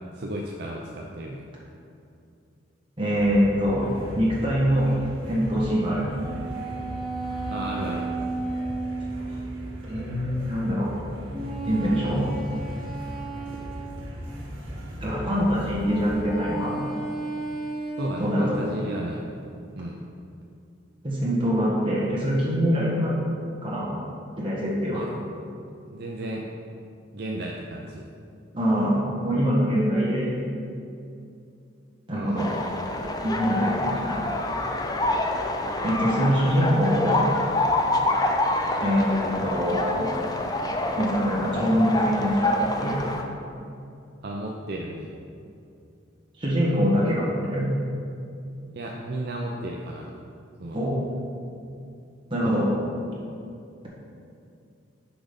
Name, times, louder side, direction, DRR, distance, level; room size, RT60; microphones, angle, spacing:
voice 1, 0.2-1.4 7.5-8.1 18.0-19.2 19.8-20.0 24.9-25.1 25.9-26.5 27.1-28.0 32.1-32.5 44.2-45.1 48.7-50.1 50.6-50.9 52.4-52.6, right 1 dB, 55° right, -1 dB, 0.5 m, -33 dB
voice 2, 3.0-3.8 4.1-4.9 5.3-6.1 9.8-10.9 11.6-12.3 15.0-16.7 18.2-18.6 21.0-23.1 23.6-23.9 24.4-25.0 28.5-30.3 32.1-32.5 33.2-34.2 35.8-37.3 38.8-40.1 41.0-43.0 46.4-47.7 50.7-51.0 52.3-52.7, equal, 25° right, -6 dB, 1.6 m, -24 dB
sound 1, 3.2-16.2, equal, 85° right, 1.6 m, -38 dB
sound 2, 6.2-9.7 11.3-14.2 15.8-19.1, right 3 dB, ahead, 0.9 m, -34 dB
sound 3, 32.4-43.2, left 1 dB, 20° left, 0.4 m, -27 dB
6.0 x 5.0 x 5.2 m, 2.5 s
head